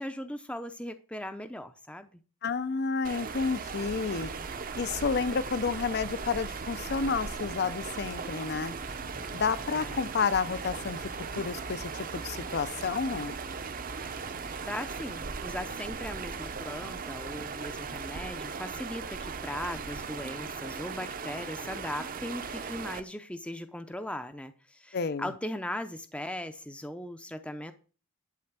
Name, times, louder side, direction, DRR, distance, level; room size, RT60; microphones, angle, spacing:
voice 1, 0.0-2.1 9.7-10.1 14.6-27.7, left 1 dB, 5° left, 0.5 m, -38 dB
voice 2, 2.4-4.3 4.8-8.8 9.3-11.0 11.3-13.3 24.9-25.3, left 5 dB, 50° left, 0.5 m, -30 dB
sound 1, 3.0-23.0, right 5 dB, 40° right, 0.6 m, -38 dB
sound 2, 3.4-15.2, left 1 dB, 85° left, 3.0 m, -52 dB
11.0 x 4.3 x 7.3 m
head